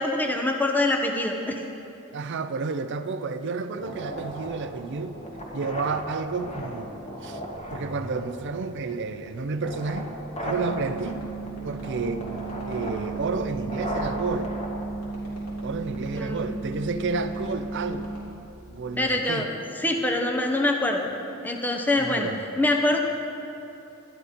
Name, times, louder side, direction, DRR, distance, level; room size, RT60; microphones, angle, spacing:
voice 1, 0.0-1.6 16.1-16.4 19.0-21.0 21.4-22.3 22.6-23.0, left 2 dB, 10° left, 2 dB, 0.8 m, -24 dB
voice 2, 2.1-5.1 5.5-6.9 7.2-7.4 7.7-10.1 10.4-11.2 11.6-14.5 15.6-18.1 18.7-19.5 22.0-22.4, right 4 dB, 55° right, 10 dB, 0.5 m, -31 dB
sound 1, 3.8-15.7, equal, 30° left, 1.8 m, -37 dB
sound 2, 10.5-18.2, right 3 dB, 90° left, 3.2 m, -35 dB
13.0 x 11.0 x 5.1 m, 3.0 s
head